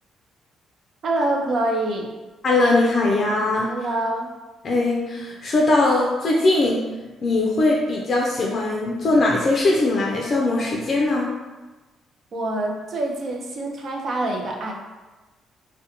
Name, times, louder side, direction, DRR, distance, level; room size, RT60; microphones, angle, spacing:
voice 1, 1.0-2.1 3.6-4.3 12.3-14.7, right 2 dB, 55° right, 0 dB, 0.4 m, -25 dB
voice 2, 2.4-3.7 4.6-6.8 7.2-11.3, left 2 dB, 50° left, -2 dB, 0.4 m, -20 dB
2.4 x 2.1 x 2.8 m, 1.2 s
cardioid pair, 90°, 0 cm